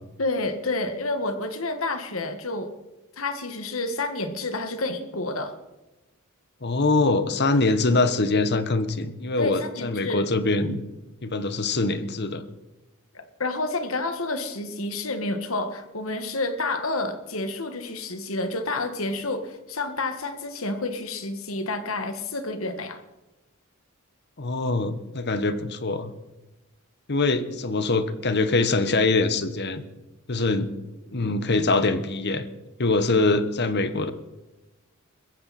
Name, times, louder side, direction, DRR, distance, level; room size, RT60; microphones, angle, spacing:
voice 1, 0.2-2.7 3.2-5.6 9.4-10.3 13.1-23.0, left 2 dB, 70° left, 8 dB, 1.8 m, -29 dB
voice 2, 6.6-10.8 11.2-12.5 24.4-26.1 27.1-29.8 30.3-30.7 31.1-32.5 32.8-34.1, left 3 dB, 50° left, 11 dB, 1.2 m, -23 dB
21.5 x 15.0 x 4.3 m, 1.0 s
head